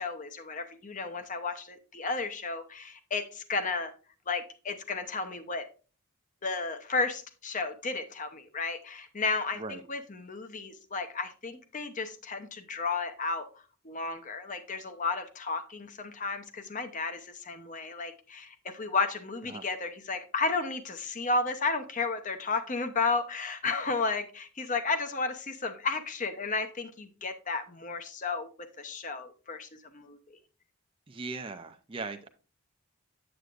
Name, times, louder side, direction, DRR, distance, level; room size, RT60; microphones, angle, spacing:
voice 1, 0.0-3.9 4.3-5.7 6.4-13.5 13.8-28.5 28.8-30.2, left 4 dB, 35° left, 9 dB, 0.8 m, -33 dB
voice 2, 31.1-32.3, right 3 dB, 25° right, 6 dB, 0.5 m, -39 dB
8.0 x 7.9 x 2.5 m, 0.36 s
head